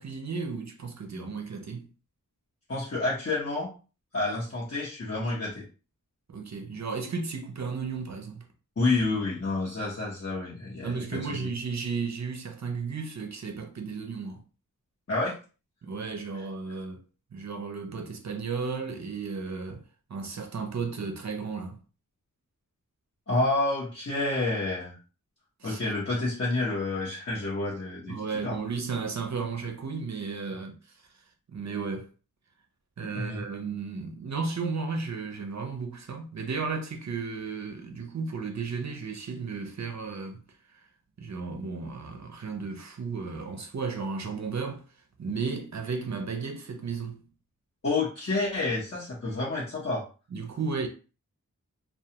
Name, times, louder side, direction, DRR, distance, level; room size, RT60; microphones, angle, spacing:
voice 1, 0.0-1.9 6.3-8.4 10.8-14.4 15.8-17.0 17.3-21.8 25.6-25.8 28.1-31.0 31.5-32.1 33.0-40.4 40.7-40.9 41.2-44.9 45.2-47.3 50.3-50.9, right 5 dB, 55° right, 0.5 m, -34 dB
voice 2, 2.7-3.7 4.1-5.6 8.8-11.4 15.1-15.4 23.3-25.0 25.6-28.6 33.0-33.4 47.8-50.0, left 2 dB, 45° left, 0.9 m, -29 dB
2.3 x 2.2 x 2.8 m
wide cardioid pair, 70°, 33 cm